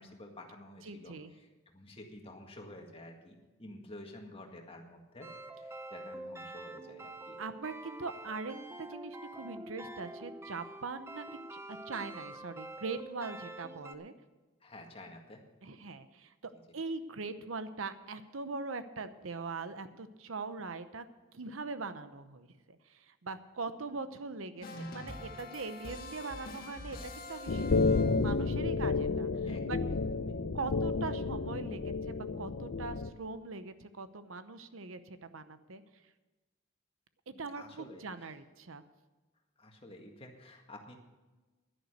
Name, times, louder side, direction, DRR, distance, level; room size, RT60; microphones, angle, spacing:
voice 1, 0.0-5.3 5.5-7.4 14.6-15.4 29.5-30.0 30.3-30.4 37.3-38.3 39.6-41.0, left 1 dB, 30° left, 2 dB, 1.8 m, -51 dB
voice 2, 0.8-1.3 7.4-11.3 11.5-14.1 15.6-21.0 21.3-27.9 28.2-29.8 30.5-35.8 37.3-38.8, right 4 dB, 80° right, 11 dB, 0.8 m, -41 dB
sound 1, 5.2-13.9, right 1 dB, 15° right, 0.6 m, -46 dB
sound 2, 24.6-28.5, left 2 dB, 45° left, 1.8 m, -45 dB
sound 3, 27.5-33.1, left 3 dB, 65° left, 0.6 m, -31 dB
11.0 x 10.5 x 6.7 m, 1.2 s
head